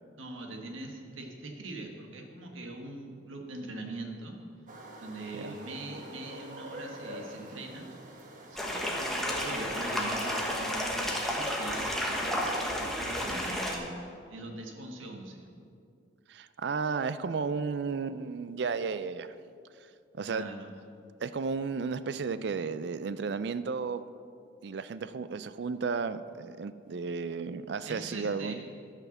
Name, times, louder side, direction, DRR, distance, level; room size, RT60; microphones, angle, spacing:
voice 1, 0.2-4.4 5.0-7.9 8.5-15.5 20.3-20.7 27.8-28.5, right 2 dB, 90° right, 2 dB, 1.5 m, -42 dB
sound 1, 4.7-12.2, right 1 dB, 40° right, 1.3 m, -46 dB
sound 2, 8.6-13.8, equal, ahead, 1.1 m, -32 dB
voice 2, 16.3-19.3 20.1-20.5 21.2-24.0 24.6-28.5, right 5 dB, 60° right, 13 dB, 0.4 m, -33 dB
12.5 x 5.8 x 7.1 m, 2.4 s
head